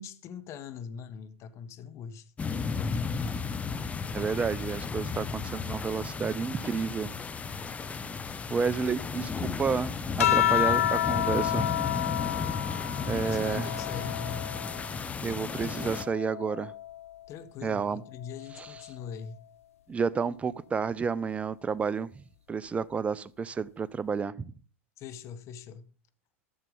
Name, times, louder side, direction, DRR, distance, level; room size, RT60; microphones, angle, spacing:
voice 1, 0.0-2.3 13.1-14.5 17.3-19.4 25.0-25.9, left 7 dB, 40° left, 1.2 m, -42 dB
sound 1, 2.4-16.0, left 5 dB, 20° left, 0.8 m, -34 dB
voice 2, 4.1-7.1 8.5-9.9 10.2-11.7 13.0-13.7 15.2-16.7 17.6-18.0 18.6-18.7 19.9-22.1 22.5-24.3, right 5 dB, 15° right, 0.5 m, -30 dB
sound 2, 10.2-15.0 15.5-17.2 18.4-18.9, left 12 dB, 80° left, 0.4 m, -30 dB
12.5 x 6.7 x 5.4 m
hypercardioid pair, 100°, 8 cm